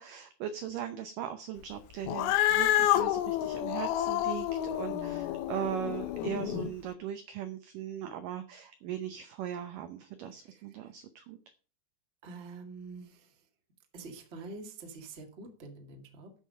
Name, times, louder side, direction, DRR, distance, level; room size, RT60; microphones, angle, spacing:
voice 1, 0.0-11.4, right 10 dB, 90° right, 9 dB, 1.9 m, -39 dB
Cat, 2.1-6.7, left 13 dB, 80° left, 2.3 m, -29 dB
voice 2, 4.9-5.4 10.3-10.9 12.2-13.4 13.9-16.3, right 2 dB, 40° right, 3 dB, 0.9 m, -46 dB
10.5 x 6.6 x 5.5 m, 0.39 s
omnidirectional pair, 4.9 m